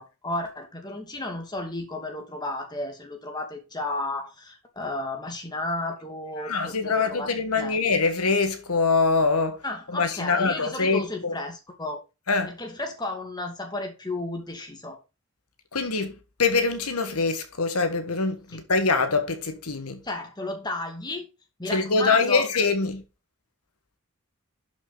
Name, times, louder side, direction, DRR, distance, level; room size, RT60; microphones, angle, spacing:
voice 1, 0.0-7.8 9.6-12.0 12.5-15.0 18.5-18.6 20.0-21.3 21.6-22.5, left 2 dB, 20° left, 2.1 m, -33 dB
voice 2, 6.4-9.6 9.9-11.3 12.3-12.5 15.7-20.0 21.7-23.0, left 4 dB, 90° left, 1.5 m, -24 dB
11.5 x 6.4 x 4.0 m
head